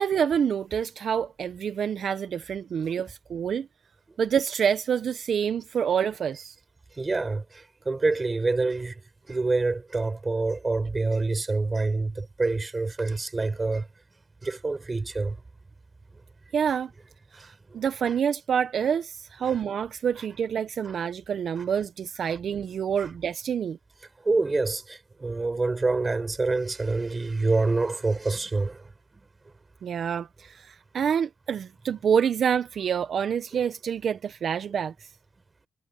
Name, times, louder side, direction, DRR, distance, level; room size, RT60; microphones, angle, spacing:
voice 1, 0.0-3.7 4.2-6.5 16.5-16.9 17.4-23.8 29.8-34.9, right 7 dB, 55° right, 1.1 m, -27 dB
voice 2, 7.0-9.0 9.3-13.9 14.4-15.4 17.3-17.5 19.4-19.5 20.8-21.0 22.3-22.4 23.0-23.1 24.2-28.9 33.5-33.6, right 3 dB, 25° right, 5.9 m, -27 dB
cardioid pair, 90°, 0 cm